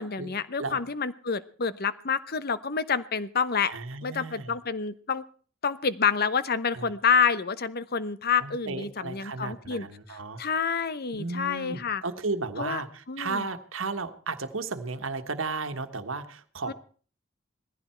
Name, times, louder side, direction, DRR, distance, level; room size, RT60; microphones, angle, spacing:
voice 1, 0.0-3.7 4.0-5.2 5.6-12.0 12.6-12.8 13.1-13.5 16.7-16.8, left 6 dB, 50° left, 15 dB, 0.9 m, -28 dB
voice 2, 3.7-4.6 6.7-6.9 8.4-10.4 11.1-16.7, right 3 dB, 90° right, 8 dB, 1.5 m, -34 dB
19.5 x 15.0 x 4.5 m, 0.44 s
head